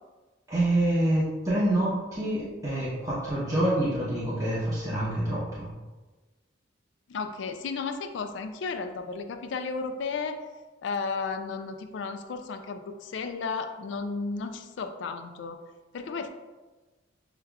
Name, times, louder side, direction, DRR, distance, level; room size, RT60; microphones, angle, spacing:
voice 1, 0.5-5.7, right 1 dB, 20° right, -9 dB, 0.8 m, -26 dB
voice 2, 7.1-10.4 10.8-15.6 15.9-16.3, left 4 dB, 70° left, 7 dB, 0.3 m, -33 dB
6.8 x 2.3 x 2.3 m, 1.2 s
head